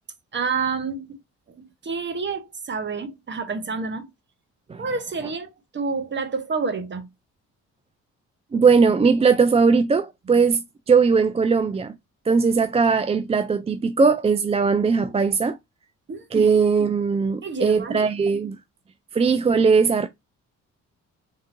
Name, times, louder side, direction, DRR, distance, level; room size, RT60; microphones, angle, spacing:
voice 1, 0.3-1.2 1.6-4.1 4.8-7.1 16.1-16.5 17.4-18.0, right 4 dB, 40° right, 1.2 m, -29 dB
voice 2, 8.5-11.9 12.3-15.6 16.3-18.6 19.1-20.1, right 5 dB, 20° right, 0.4 m, -19 dB
3.7 x 3.5 x 2.7 m
cardioid pair, 90°, 30 cm